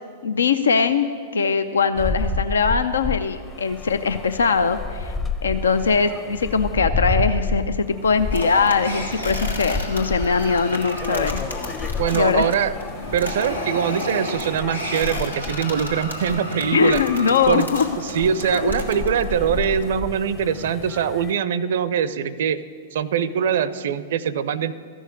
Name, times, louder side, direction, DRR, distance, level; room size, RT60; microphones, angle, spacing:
voice 1, 0.2-5.1 5.4-11.4 12.1-12.5 16.7-17.9 18.4-18.7, left 5 dB, 70° left, 10 dB, 0.5 m, -21 dB
sound 1, 2.0-21.3, left 3 dB, 20° left, 0.8 m, -30 dB
sound 2, 8.3-19.9, equal, 90° left, 1.6 m, -32 dB
voice 2, 12.0-12.8 13.1-17.0 17.5-17.7 18.0-22.6 22.9-24.7, right 8 dB, 55° right, 17 dB, 0.5 m, -23 dB
14.0 x 6.4 x 9.0 m, 2.1 s
figure-of-eight pair, 100°, 0 cm